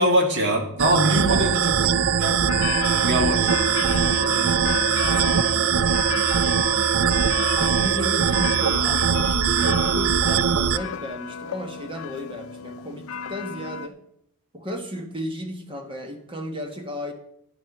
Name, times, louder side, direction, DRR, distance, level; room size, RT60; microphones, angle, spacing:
voice 1, 0.0-2.4 3.1-3.5, equal, 55° right, 2 dB, 2.0 m, -23 dB
sound 1, 0.8-10.8, right 7 dB, 70° right, 0.5 m, -21 dB
sound 2, 2.5-13.9, left 7 dB, 70° left, 0.5 m, -33 dB
voice 2, 3.1-6.2 7.5-14.0 14.5-17.1, equal, 25° right, 4 dB, 1.4 m, -35 dB
11.0 x 7.0 x 5.9 m, 0.75 s
head